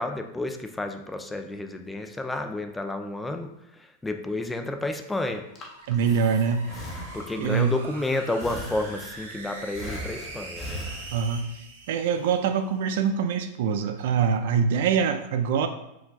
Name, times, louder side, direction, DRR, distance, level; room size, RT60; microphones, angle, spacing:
voice 1, 0.0-5.5 7.1-10.9, left 2 dB, 10° left, 6 dB, 0.4 m, -31 dB
Breathing, 5.3-7.6 8.4-9.3 9.7-11.6, equal, 30° left, 0.8 m, -39 dB
sound 1, 5.4-12.9, right 2 dB, 90° right, 0.8 m, -43 dB
voice 2, 5.9-6.7 7.4-7.7 11.1-11.5 11.9-15.7, right 6 dB, 70° right, 8 dB, 0.4 m, -24 dB
4.7 x 2.3 x 3.9 m, 0.88 s
supercardioid pair, 130°, 0 cm